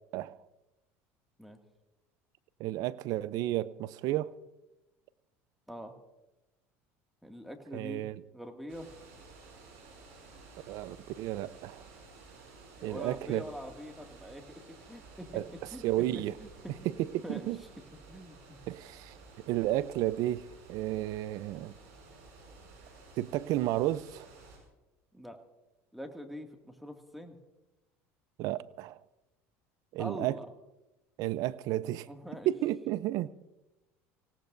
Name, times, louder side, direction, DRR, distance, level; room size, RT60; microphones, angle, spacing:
voice 1, 2.6-4.3 7.7-8.1 10.7-11.8 12.8-13.4 15.3-15.5 15.8-16.4 16.8-17.6 18.7-19.1 19.5-21.7 23.2-24.3 28.4-29.0 29.9-30.4 31.2-32.1 32.5-33.3, right 15 dB, 65° right, 18 dB, 0.6 m, -32 dB
voice 2, 7.2-8.1 8.3-8.9 12.8-16.1 16.4-16.8 17.2-17.5 17.9-18.6 25.1-25.4 25.9-27.4 30.0-30.5 32.1-32.5, equal, ahead, 4 dB, 2.2 m, -44 dB
sound 1, 8.7-24.6, right 3 dB, 80° right, 6.7 m, -54 dB
25.0 x 17.5 x 2.7 m, 1.0 s
hypercardioid pair, 85°, 7 cm